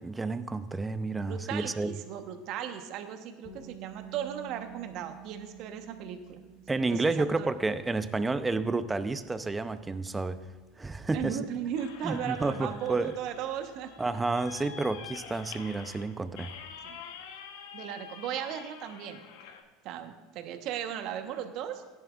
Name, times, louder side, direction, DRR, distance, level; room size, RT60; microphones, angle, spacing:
voice 1, 0.0-2.0 6.7-10.4 10.8-11.4 12.0-13.1 14.0-16.5, right 3 dB, 15° right, 12 dB, 0.7 m, -30 dB
voice 2, 1.3-6.4 6.9-7.5 11.1-13.9 16.8-17.0 17.7-19.2 19.8-21.8, right 9 dB, 60° right, 7 dB, 1.2 m, -36 dB
sound 1, 3.4-15.3, right 9 dB, 45° left, 1.9 m, -52 dB
sound 2, 11.7-19.6, left 7 dB, 75° left, 1.1 m, -47 dB
17.0 x 10.5 x 2.5 m, 1.3 s
hypercardioid pair, 80°, 0 cm